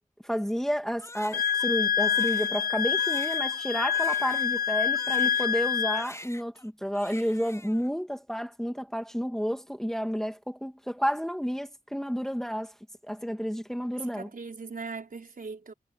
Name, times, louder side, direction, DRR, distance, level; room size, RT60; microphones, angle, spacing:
voice 1, 0.2-12.7 13.0-14.3, equal, 5° left, 2.1 m, -31 dB
Crying sobbing, 1.0-5.7 5.9-6.7 6.9-7.9, left 1 dB, 20° left, 4.9 m, -46 dB
Wind instrument woodwind instrument, 1.3-6.1, left 8 dB, 80° left, 0.5 m, -26 dB
voice 2, 14.0-15.7, right 4 dB, 70° right, 4.9 m, -39 dB
wide cardioid pair, 70°, 15 cm